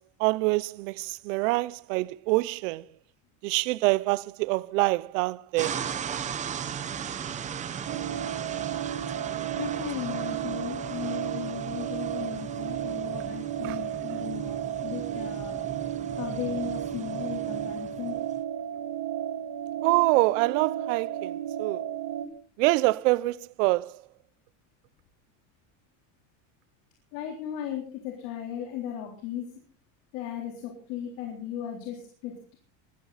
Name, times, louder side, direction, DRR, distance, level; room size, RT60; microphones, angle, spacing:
voice 1, 0.2-2.8 3.4-5.8 13.6-13.8 19.8-21.3 21.6-21.8 22.6-23.9, right 22 dB, 75° right, 0.8 m, -25 dB
sound 1, 5.6-18.4, right 8 dB, 20° right, 0.8 m, -37 dB
sound 2, 7.9-22.3, right 10 dB, 35° right, 2.6 m, -33 dB
voice 2, 9.6-15.5 16.2-18.2 27.1-29.5 30.1-32.5, left 10 dB, 60° left, 3.8 m, -36 dB
22.0 x 14.0 x 4.1 m
cardioid pair, 175°, 38 cm